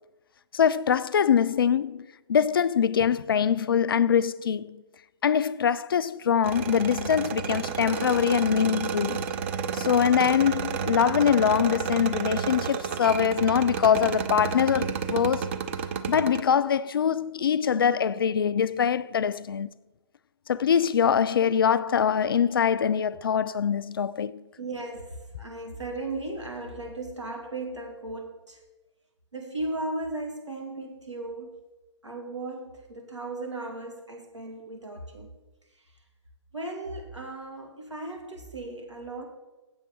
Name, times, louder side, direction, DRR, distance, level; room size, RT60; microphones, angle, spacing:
voice 1, 0.5-4.8 5.2-9.2 9.7-15.6 16.1-19.7 20.5-24.4, left 8 dB, 50° left, 0.4 m, -23 dB
sound 1, 6.4-16.4, right 6 dB, 25° right, 0.5 m, -31 dB
voice 2, 24.6-28.6 29.3-31.6 32.0-35.3 36.5-39.2, right 2 dB, 85° right, 2.7 m, -36 dB
7.9 x 7.1 x 7.0 m
figure-of-eight pair, 130°, 15 cm